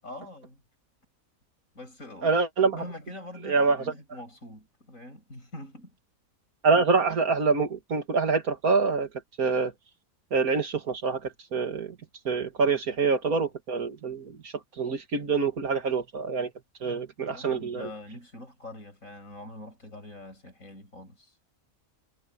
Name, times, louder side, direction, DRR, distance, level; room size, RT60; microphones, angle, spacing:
voice 1, 0.0-0.6 1.7-2.4 2.7-6.0 12.7-12.9 17.3-21.3, left 1 dB, 65° left, 7.5 m, -44 dB
voice 2, 2.2-2.8 3.4-3.8 6.6-9.1 9.4-9.7 10.3-11.2 11.5-12.0 12.3-16.5 16.8-17.9, right 4 dB, 90° right, 2.5 m, -25 dB
omnidirectional pair, 1.5 m